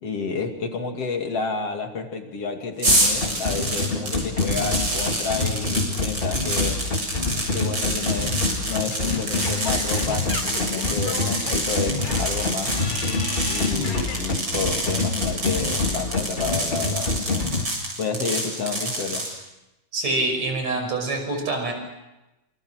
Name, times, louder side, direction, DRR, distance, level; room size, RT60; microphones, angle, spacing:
voice 1, 0.0-6.9 7.5-12.8 13.5-17.5 18.0-19.2, left 5 dB, 55° left, 4 dB, 3.4 m, -30 dB
sound 1, 2.8-19.3, right 1 dB, 40° right, 7.9 m, -27 dB
sound 2, 2.9-17.6, left 3 dB, 20° left, 1.7 m, -27 dB
Singing / Scratching (performance technique), 8.9-14.2, left 4 dB, 80° left, 4.6 m, -35 dB
voice 2, 19.9-21.7, right 2 dB, 60° right, 4 dB, 7.0 m, -25 dB
28.0 x 27.5 x 6.4 m, 0.98 s
omnidirectional pair, 3.5 m